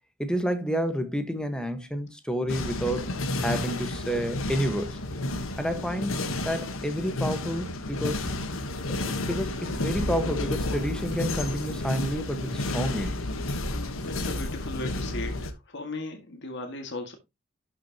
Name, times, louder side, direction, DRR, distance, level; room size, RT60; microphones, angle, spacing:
voice 1, 0.2-3.1 3.4-5.0 5.6-6.2 6.4-8.2 9.1-13.2, equal, 5° left, 1.2 m, -30 dB
sound 1, 2.5-15.5, left 2 dB, 75° left, 1.2 m, -31 dB
voice 2, 14.0-17.1, left 2 dB, 60° left, 1.9 m, -37 dB
11.5 x 6.1 x 2.9 m
head